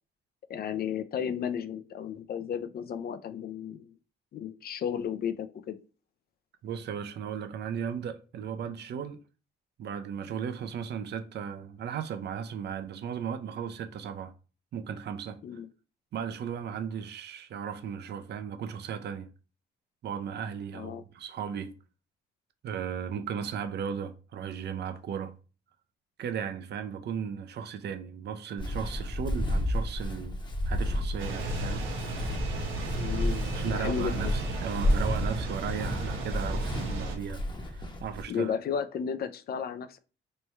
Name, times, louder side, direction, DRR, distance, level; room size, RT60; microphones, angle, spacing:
voice 1, 0.5-3.9 4.3-5.8 15.4-15.7 20.7-21.0 32.9-34.3 38.3-40.0, left 7 dB, 50° left, 0.4 m, -33 dB
voice 2, 6.6-9.2 9.8-14.3 14.7-15.4 16.1-19.3 20.0-21.7 22.6-25.4 26.2-30.4 30.7-31.9 33.5-38.5, right 7 dB, 60° right, 0.5 m, -36 dB
Walk footsteps, 28.6-38.2, left 1 dB, 20° left, 0.8 m, -31 dB
sound 1, 31.2-37.2, right 2 dB, 80° right, 1.1 m, -35 dB
3.2 x 2.2 x 4.1 m
cardioid pair, 90°, 20 cm